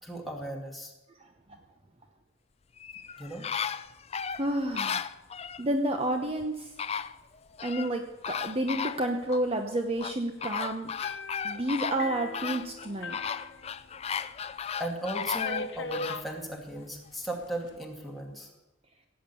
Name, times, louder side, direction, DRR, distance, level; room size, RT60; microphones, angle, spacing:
voice 1, 0.0-0.9 3.2-3.5 7.1-7.2 14.8-18.5, right 1 dB, ahead, -1 dB, 2.3 m, -37 dB
sound 1, 2.8-5.6 6.4-6.5 6.8-7.9 8.2-9.4 10.0-16.2 16.7-16.8, left 7 dB, 30° left, 0.4 m, -35 dB
voice 2, 4.4-5.1 5.6-6.7 7.6-10.9 11.4-13.2, right 1 dB, 30° right, 5 dB, 0.9 m, -30 dB
sound 2, 11.0-14.2 14.5-14.6 15.4-16.3 17.2-17.7, left 3 dB, 65° left, 1.0 m, -40 dB
16.5 x 9.0 x 6.9 m, 1.0 s
head